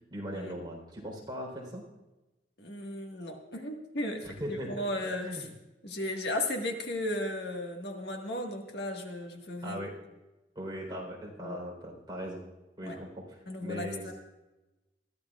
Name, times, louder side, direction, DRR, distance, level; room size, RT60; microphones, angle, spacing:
voice 1, 0.1-1.8 4.2-4.8 5.2-5.5 9.6-10.0 10.6-12.4 12.8-14.1, equal, 25° right, -1 dB, 4.0 m, -39 dB
voice 2, 2.6-5.5 5.8-9.8 11.4-11.6 12.8-13.0 13.5-14.1, left 1 dB, 65° left, 2 dB, 1.7 m, -35 dB
22.0 x 14.5 x 2.4 m, 1.0 s
head